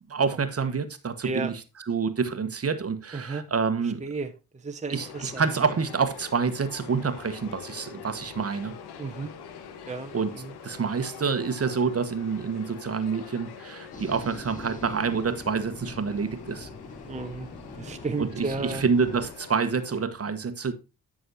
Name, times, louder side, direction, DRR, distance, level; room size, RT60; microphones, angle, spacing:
voice 1, 0.1-1.6 1.9-4.0 4.9-8.7 10.1-10.3 10.6-16.7 18.2-20.7, right 5 dB, 35° right, 1.2 m, -27 dB
voice 2, 3.1-3.4 3.8-5.4 9.0-9.3 9.9-10.5 17.1-17.5 17.8-18.8, right 3 dB, 15° right, 1.0 m, -33 dB
sound 1, 4.9-20.0, left 6 dB, 70° left, 1.4 m, -45 dB
sound 2, 13.9-19.3, left 2 dB, 20° left, 2.6 m, -42 dB
11.0 x 6.2 x 2.7 m
supercardioid pair, 55°, 40 cm